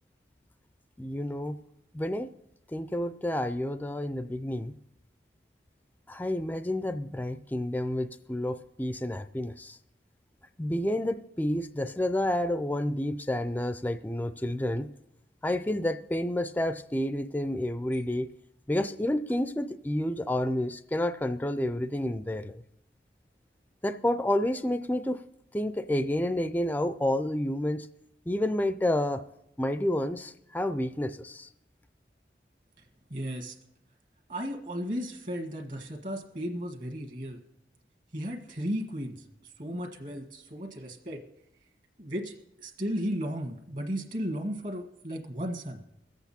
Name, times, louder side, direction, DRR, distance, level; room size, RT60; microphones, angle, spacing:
voice 1, 1.0-1.6 1.9-2.3 2.7-4.7 6.1-9.8 10.6-14.9 15.4-18.3 18.7-22.6 23.8-25.2 25.5-27.9 28.3-29.2 29.6-31.5, left 1 dB, 10° left, 11 dB, 0.3 m, -29 dB
voice 2, 33.1-33.6 34.3-37.4 38.1-41.2 42.0-45.8, equal, 45° right, 1 dB, 1.5 m, -35 dB
21.5 x 8.2 x 4.2 m, 0.82 s
head